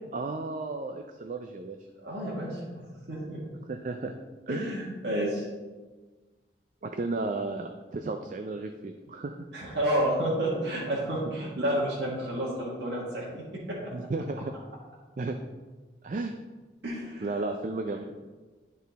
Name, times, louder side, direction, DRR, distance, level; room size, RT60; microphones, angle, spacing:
voice 1, 0.1-1.8 3.7-4.1 4.5-4.7 6.8-9.4 13.9-14.5 15.2-15.4 16.0-16.3 17.2-18.0, right 3 dB, 45° right, 5 dB, 0.4 m, -33 dB
voice 2, 2.0-2.6 3.1-3.4 4.5-5.4 9.5-13.4 16.8-17.3, right 1 dB, 70° right, -6 dB, 1.6 m, -30 dB
10.5 x 4.2 x 4.0 m, 1.3 s
head